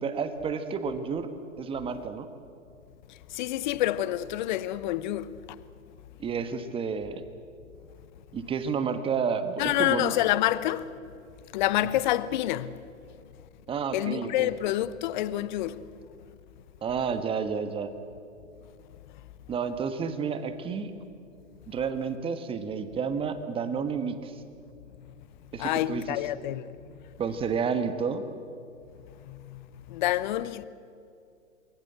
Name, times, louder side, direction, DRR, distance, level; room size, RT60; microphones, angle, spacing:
voice 1, 0.0-1.3 1.6-2.3 6.2-7.2 8.3-10.1 13.7-14.5 16.8-17.9 19.5-20.9 21.7-24.3 25.5-26.2 27.2-28.3, right 6 dB, 15° right, 1.4 m, -30 dB
voice 2, 3.1-5.6 9.6-10.9 11.5-12.8 13.9-15.8 25.5-27.0 29.2-30.7, left 14 dB, 35° left, 0.8 m, -28 dB
27.5 x 21.5 x 8.0 m
figure-of-eight pair, 120°, 40 cm